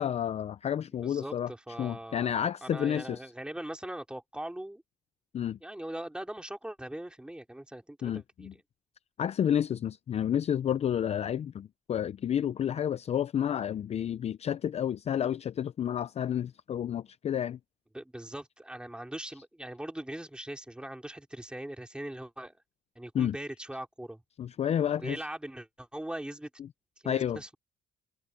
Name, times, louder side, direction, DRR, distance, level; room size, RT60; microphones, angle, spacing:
voice 1, 0.0-1.5 1.8-3.2 5.3-5.6 8.0-8.5 9.2-17.6 23.1-23.3 24.4-25.2 27.0-27.4, left 9 dB, 40° left, 0.5 m, -30 dB
voice 2, 1.0-4.8 5.6-8.6 17.9-22.5 23.0-24.2 25.0-26.5 27.0-27.6, right 1 dB, 5° right, 3.9 m, -41 dB
cardioid pair, 110°, 17 cm